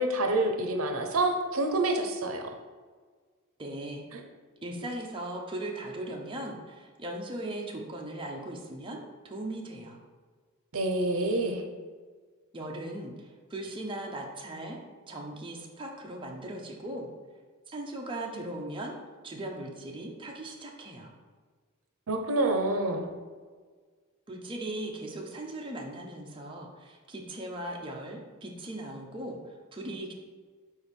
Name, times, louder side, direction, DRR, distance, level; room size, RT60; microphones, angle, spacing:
voice 1, 0.0-2.4 10.7-11.6 22.1-23.1, right 2 dB, 75° right, 4 dB, 0.7 m, -27 dB
voice 2, 3.6-4.0 4.6-10.0 12.5-14.8 15.1-17.1 17.7-19.0 19.2-21.1 24.3-30.1, right 1 dB, 25° right, -1 dB, 0.7 m, -38 dB
4.5 x 4.3 x 5.2 m, 1.5 s
head